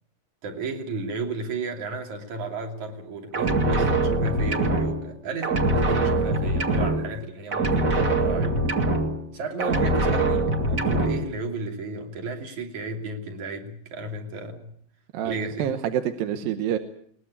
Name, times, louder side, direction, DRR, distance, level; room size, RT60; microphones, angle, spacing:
voice 1, 0.4-8.7 9.3-14.7 15.2-15.7 16.4-16.5, right 2 dB, 50° right, 3 dB, 4.0 m, -33 dB
sound 1, 3.3-5.2 5.4-7.3 7.5-9.3 9.6-11.3, right 2 dB, 35° right, 1.5 m, -23 dB
voice 2, 15.1-16.8, right 10 dB, 70° right, 7 dB, 2.7 m, -27 dB
21.5 x 20.0 x 8.5 m, 0.66 s
omnidirectional pair, 4.5 m